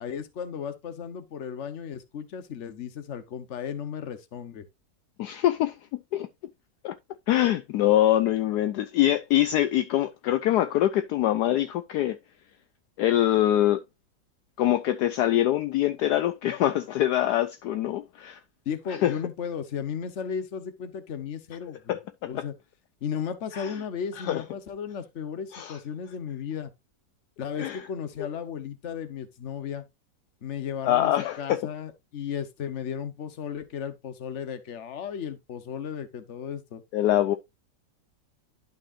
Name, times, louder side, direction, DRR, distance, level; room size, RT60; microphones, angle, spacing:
voice 1, 0.0-4.6 18.6-22.0 22.2-22.5 23.0-26.7 27.4-29.8 30.4-31.1 31.4-36.8, left 7 dB, 50° left, 1.2 m, -35 dB
voice 2, 5.2-6.3 6.8-6.9 7.3-12.2 13.0-13.8 14.6-18.4 19.0-19.2 21.9-22.4 23.5-23.7 24.3-24.4 25.5-25.8 27.6-27.8 30.8-31.6 36.9-37.4, left 13 dB, 75° left, 1.1 m, -24 dB
11.0 x 5.4 x 2.5 m
omnidirectional pair, 1.9 m